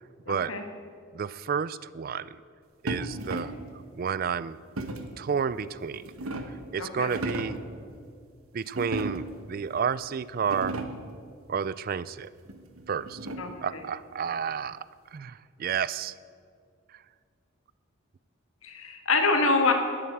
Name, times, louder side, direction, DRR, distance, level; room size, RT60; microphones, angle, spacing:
voice 1, 0.3-0.6 6.8-7.1 13.4-13.8 18.6-19.7, left 3 dB, 80° left, 4 dB, 1.7 m, -26 dB
voice 2, 1.1-2.3 2.8-3.5 3.9-4.6 5.2-6.4 6.7-7.6 8.5-10.8 11.5-12.3 12.9-13.2 13.6-14.8 15.1-16.1, right 6 dB, 45° right, 17 dB, 0.3 m, -31 dB
sound 1, 2.9-3.7 4.8-5.2 5.8-6.7 7.0-7.7 8.7-9.5 10.0-10.1 10.4-11.1 12.5-13.7, right 1 dB, 90° right, 1.2 m, -35 dB
12.5 x 8.7 x 7.9 m, 2.2 s
head